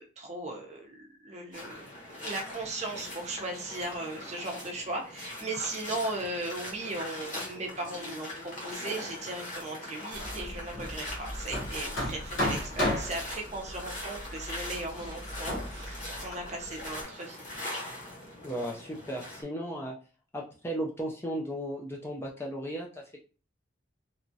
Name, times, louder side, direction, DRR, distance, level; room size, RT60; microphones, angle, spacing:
voice 1, 0.0-17.4, right 2 dB, 35° right, 1 dB, 0.6 m, -37 dB
sound 1, 1.5-19.4, left 1 dB, 40° left, 0.9 m, -41 dB
Hammer, 10.1-17.0, left 1 dB, 75° left, 1.0 m, -35 dB
voice 2, 18.4-20.0 20.3-23.2, right 1 dB, 10° left, -2 dB, 0.4 m, -35 dB
2.9 x 2.3 x 2.6 m, 0.37 s
head